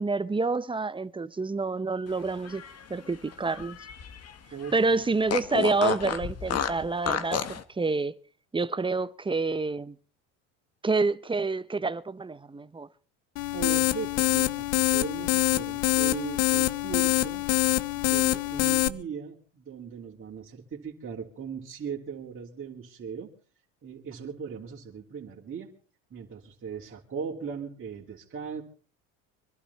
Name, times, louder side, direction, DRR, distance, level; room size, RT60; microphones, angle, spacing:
voice 1, 0.0-2.6 2.9-3.8 4.7-8.2 8.5-9.9 10.8-12.9, right 3 dB, 15° right, 0.9 m, -28 dB
Fart, 2.3-4.3 4.6-4.7 5.3-7.6, left 8 dB, 40° left, 1.7 m, -31 dB
voice 2, 4.5-5.0 13.5-17.4 18.0-23.3 23.8-25.7 26.1-28.6, right 6 dB, 35° right, 3.2 m, -38 dB
sound 1, 13.4-18.9, left 17 dB, 85° left, 0.9 m, -25 dB
25.0 x 12.0 x 4.2 m
supercardioid pair, 95°, 37 cm